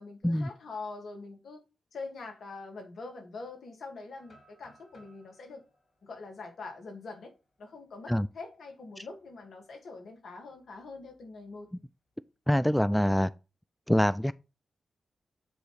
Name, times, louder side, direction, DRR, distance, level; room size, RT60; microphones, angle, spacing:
voice 1, 0.0-1.6 1.9-5.6 6.0-7.3 7.6-11.7, left 3 dB, 70° left, 2.2 m, -44 dB
sound 1, 4.2-8.1 8.5-8.6 9.1-9.4 10.8-11.6, equal, 50° left, 3.1 m, -63 dB
voice 2, 12.5-13.3 13.9-14.3, equal, 5° left, 0.3 m, -24 dB
8.7 x 3.1 x 4.9 m
cardioid pair, 50°, 0 cm